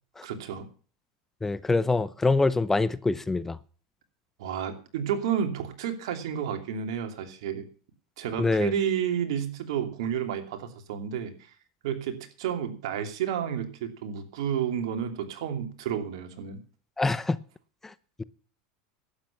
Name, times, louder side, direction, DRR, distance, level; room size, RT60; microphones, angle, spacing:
voice 1, 0.2-0.7 4.4-7.6 8.2-11.5 11.8-16.6, right 8 dB, 75° right, 2.7 m, -31 dB
voice 2, 1.4-3.6 8.4-8.7 17.0-17.4 17.8-17.9, left 3 dB, 10° left, 0.7 m, -25 dB
12.0 x 8.9 x 7.1 m
supercardioid pair, 115°, 3 cm